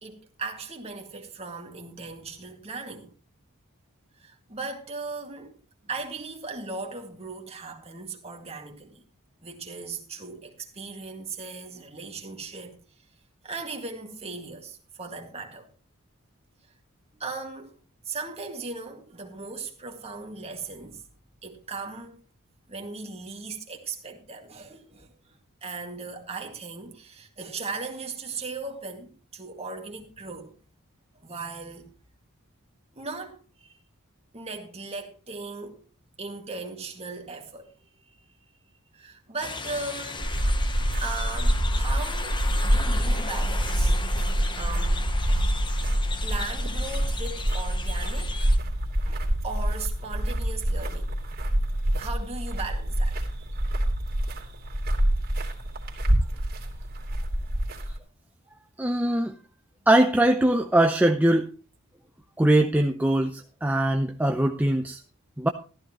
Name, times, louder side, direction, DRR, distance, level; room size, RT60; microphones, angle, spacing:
voice 1, 0.0-3.1 4.1-5.6 5.8-9.0 9.4-12.8 13.4-15.7 16.6-16.7 17.2-17.7 18.0-21.1 21.4-22.2 22.7-30.6 31.1-31.9 32.9-33.8 34.3-35.8 36.2-38.1 38.9-40.3 41.0-44.0 44.5-45.1 46.2-48.5 49.0-51.2 52.0-53.5, right 3 dB, 30° right, 2.1 m, -38 dB
sound 1, 39.4-48.6, left 4 dB, 20° left, 0.9 m, -36 dB
sound 2, 40.2-58.0, right 1 dB, 45° right, 2.9 m, -26 dB
voice 2, 58.8-59.3 59.9-61.5 62.4-65.0 65.4-65.5, right 1 dB, 5° right, 0.6 m, -21 dB
14.0 x 13.0 x 3.0 m
head